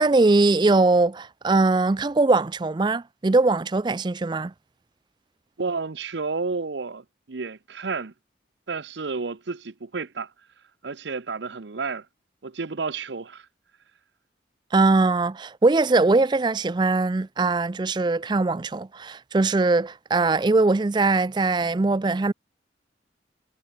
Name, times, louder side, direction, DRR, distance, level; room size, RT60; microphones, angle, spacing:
voice 1, 0.0-4.5 14.7-22.3, right 3 dB, 25° right, 0.4 m, -21 dB
voice 2, 5.6-8.1 8.7-10.3 10.8-12.1 12.4-13.5, right 4 dB, 75° right, 0.8 m, -31 dB
head